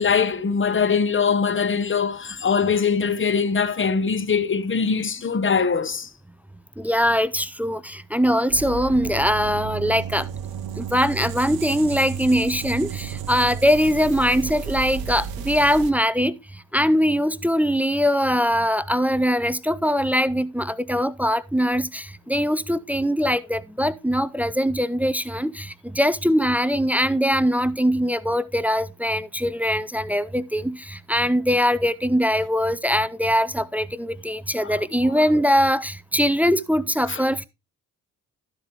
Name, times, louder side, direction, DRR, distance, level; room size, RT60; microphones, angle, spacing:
voice 1, 0.0-6.1 34.6-35.3 37.1-37.2, left 6 dB, 30° left, 1.0 m, -22 dB
voice 2, 6.8-10.3 10.8-16.4 16.7-37.5, equal, 5° right, 0.4 m, -22 dB
sound 1, 8.5-15.9, right 8 dB, 55° right, 1.0 m, -33 dB
12.0 x 7.4 x 3.0 m
hypercardioid pair, 40°, 43 cm